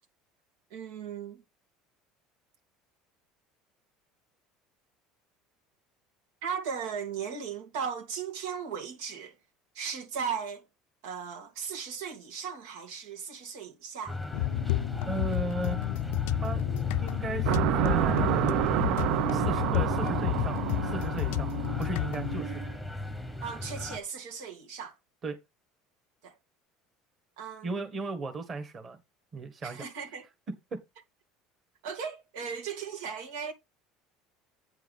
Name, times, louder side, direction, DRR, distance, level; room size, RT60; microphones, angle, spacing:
voice 1, 0.7-1.4 6.4-9.3 9.7-10.6 11.0-14.2 23.4-24.9 26.2-26.3 27.4-27.9 29.6-30.3 31.8-33.5, right 6 dB, 85° right, 2.6 m, -37 dB
sound 1, 14.1-24.0, left 1 dB, 5° right, 1.1 m, -37 dB
sound 2, 14.3-22.4, left 19 dB, 80° left, 0.4 m, -31 dB
voice 2, 15.0-15.8 16.4-16.6 17.0-18.7 19.3-21.5 21.8-22.6 25.2-25.4 27.6-29.0 29.3-29.8, right 3 dB, 20° right, 1.5 m, -36 dB
sound 3, 17.5-22.7, right 14 dB, 50° right, 0.4 m, -29 dB
8.7 x 4.6 x 5.4 m
cardioid pair, 180°, 0 cm